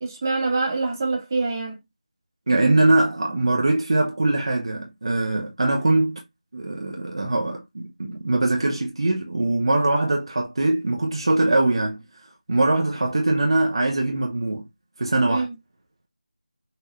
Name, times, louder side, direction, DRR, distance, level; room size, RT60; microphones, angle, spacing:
voice 1, 0.0-1.8 15.3-15.5, right 3 dB, 25° right, 1.2 m, -25 dB
voice 2, 2.5-6.2 6.5-12.0 12.5-14.7 15.0-15.5, right 2 dB, 45° right, 1.0 m, -22 dB
5.9 x 2.7 x 3.3 m
figure-of-eight pair, 170°, 4 cm